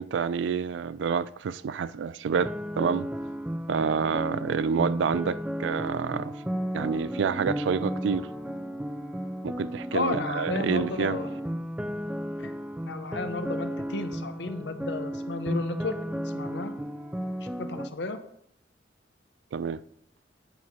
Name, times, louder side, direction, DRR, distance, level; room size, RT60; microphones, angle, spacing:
voice 1, 0.0-3.1 3.7-6.3 6.7-8.3 9.4-11.2 19.5-19.8, right 6 dB, 90° right, 0.3 m, -28 dB
sound 1, 2.3-17.9, equal, 5° right, 0.3 m, -34 dB
voice 2, 9.9-11.3 12.4-12.5 12.9-16.7 17.6-18.2, left 3 dB, 70° left, 0.8 m, -33 dB
8.6 x 4.6 x 5.6 m
head